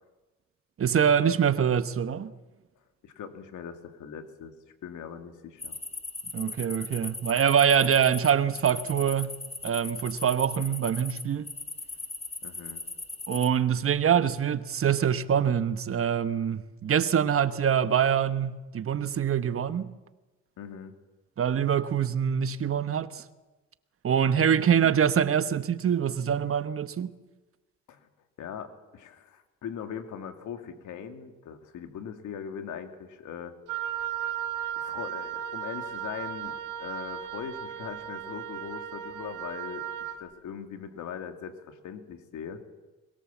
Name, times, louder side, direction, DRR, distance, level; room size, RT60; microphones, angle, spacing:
voice 1, 0.8-2.3 6.3-9.3 9.6-11.5 13.3-19.9 21.4-23.2 24.0-27.1, right 8 dB, 45° right, 1.2 m, -24 dB
voice 2, 3.0-4.5 4.8-5.8 12.4-12.8 20.6-21.0 27.9-28.1 28.4-33.5 34.2-34.3 34.8-42.6, left 8 dB, 75° left, 2.5 m, -40 dB
sound 1, 5.6-13.5, left 3 dB, 20° left, 2.0 m, -38 dB
Wind instrument woodwind instrument, 33.7-40.2, right 10 dB, 80° right, 1.8 m, -35 dB
22.5 x 21.5 x 7.3 m
cardioid pair, 90°, 30 cm